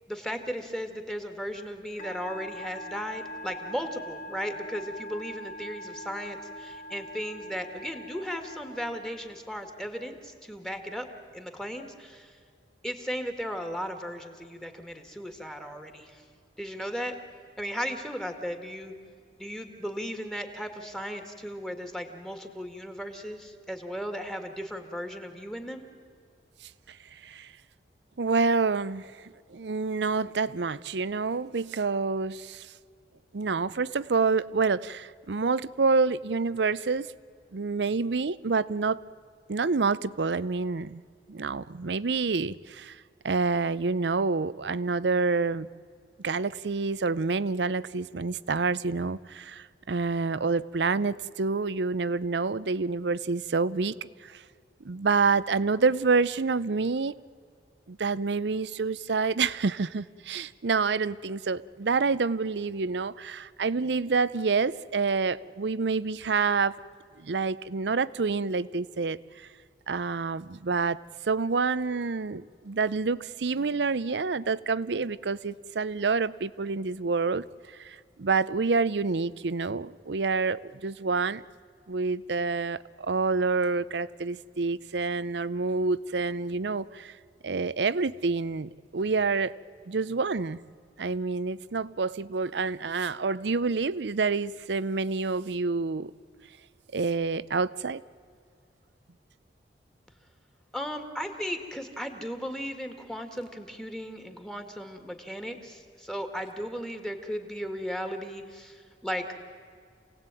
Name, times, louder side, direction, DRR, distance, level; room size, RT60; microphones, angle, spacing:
voice 1, 0.1-11.1 11.3-12.4 12.8-16.2 16.6-17.2 17.6-18.9 19.4-25.8 100.7-109.3, equal, 5° left, 6 dB, 2.0 m, -36 dB
Musical instrument, 2.0-9.6, equal, 50° left, 2.3 m, -42 dB
voice 2, 28.2-29.1 29.5-32.7 33.3-37.1 37.5-39.0 39.5-41.0 41.3-43.0 43.2-45.7 46.2-53.9 54.2-54.4 54.8-57.1 57.9-66.8 67.2-69.2 69.9-71.0 71.3-77.4 77.8-81.4 81.9-87.1 87.4-89.5 89.9-90.6 91.0-96.1 96.9-98.0, right 4 dB, 75° right, 18 dB, 0.6 m, -27 dB
27.5 x 18.0 x 9.1 m, 2.2 s
head